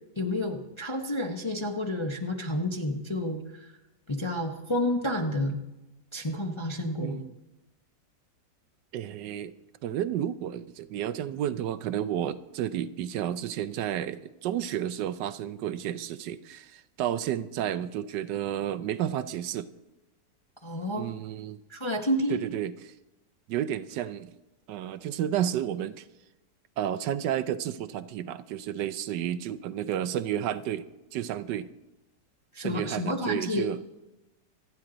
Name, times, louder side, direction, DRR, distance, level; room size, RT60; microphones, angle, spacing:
voice 1, 0.2-3.7 4.1-5.6 6.1-7.2 20.6-21.1 21.7-22.4 32.5-33.7, left 1 dB, 25° left, 3 dB, 0.6 m, -30 dB
voice 2, 7.0-7.3 8.9-9.5 9.8-19.7 21.0-21.6 22.3-22.9 23.5-24.3 24.7-26.0 26.8-31.7 32.6-33.8, right 11 dB, 80° right, 13 dB, 1.3 m, -31 dB
26.5 x 9.5 x 3.9 m, 1.0 s
omnidirectional pair, 1.9 m